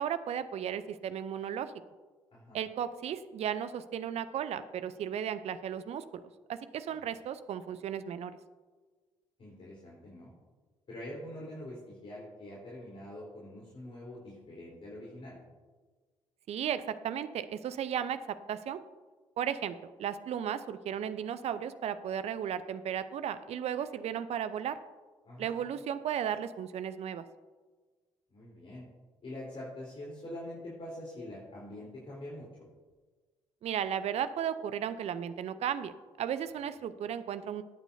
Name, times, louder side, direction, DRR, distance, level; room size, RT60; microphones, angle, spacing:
voice 1, 0.0-1.7 2.5-6.2 6.5-8.4 16.5-18.8 19.4-24.8 25.4-27.2 33.6-37.6, right 9 dB, 50° right, 13 dB, 0.6 m, -35 dB
voice 2, 9.4-10.3 10.9-15.4 25.2-25.6 28.3-28.8 29.2-32.7, left 1 dB, 45° left, -6 dB, 3.7 m, -44 dB
18.0 x 8.9 x 2.7 m, 1.4 s
figure-of-eight pair, 45°, 14 cm